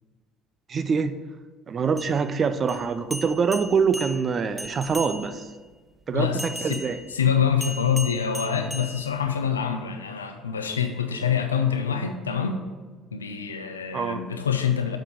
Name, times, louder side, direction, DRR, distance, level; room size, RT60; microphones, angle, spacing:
voice 1, 0.7-1.2 1.7-5.5 6.1-7.0 13.9-14.2, right 5 dB, 40° right, 11 dB, 0.6 m, -25 dB
sound 1, 1.9-5.6 6.4-9.6, equal, 5° right, 0.8 m, -38 dB
voice 2, 6.1-6.8 7.1-12.6 13.1-15.0, left 7 dB, 85° left, 6 dB, 0.6 m, -25 dB
7.4 x 5.2 x 5.9 m, 1.4 s
figure-of-eight pair, 55°, 0 cm